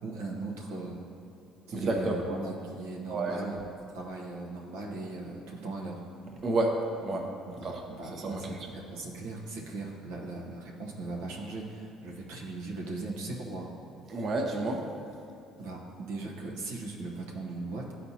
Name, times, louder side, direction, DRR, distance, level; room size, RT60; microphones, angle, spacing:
voice 1, 0.0-1.0 1.7-3.6 3.9-6.0 7.5-13.7 15.6-17.9, right 2 dB, 90° right, -2 dB, 1.0 m, -38 dB
voice 2, 1.7-2.2 3.1-3.5 6.4-6.7 7.0-7.3 7.6-7.8 8.1-8.6 14.1-14.8, right 2 dB, 50° right, 1 dB, 0.8 m, -30 dB
11.0 x 4.3 x 2.8 m, 2.8 s
supercardioid pair, 75°, 0 cm